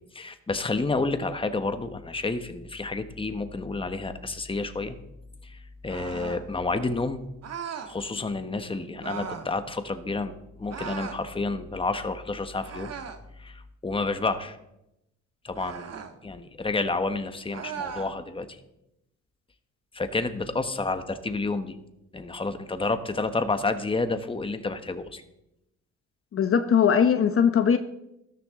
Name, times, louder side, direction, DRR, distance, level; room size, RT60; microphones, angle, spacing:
voice 1, 0.1-5.0 5.4-5.6 5.8-7.2 7.9-12.9 13.4-14.6 15.4-18.6 19.9-21.8 22.1-25.2, left 3 dB, 20° left, 9 dB, 1.2 m, -30 dB
sound 1, 5.9-6.5 7.4-7.9 9.0-9.5 10.7-11.2 12.6-13.3 15.5-16.1 17.5-18.1, right 7 dB, 55° right, 1.5 m, -37 dB
voice 2, 26.3-27.8, left 7 dB, 45° left, 8 dB, 0.9 m, -20 dB
13.5 x 13.0 x 3.7 m, 0.85 s
cardioid pair, 90°, 30 cm